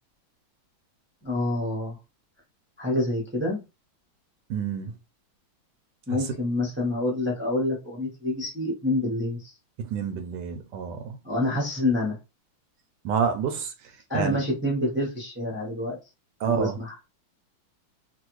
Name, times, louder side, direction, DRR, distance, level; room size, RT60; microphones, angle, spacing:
voice 1, 1.2-2.0 2.8-3.6 6.1-9.5 11.2-12.2 14.1-16.0 16.4-16.9, left 1 dB, 20° right, 0.3 m, -27 dB
voice 2, 4.5-4.9 6.2-6.3 9.8-11.2 13.0-13.7 14.1-14.4 16.4-16.8, right 7 dB, 75° right, 1.0 m, -28 dB
3.2 x 2.4 x 3.0 m
omnidirectional pair, 2.2 m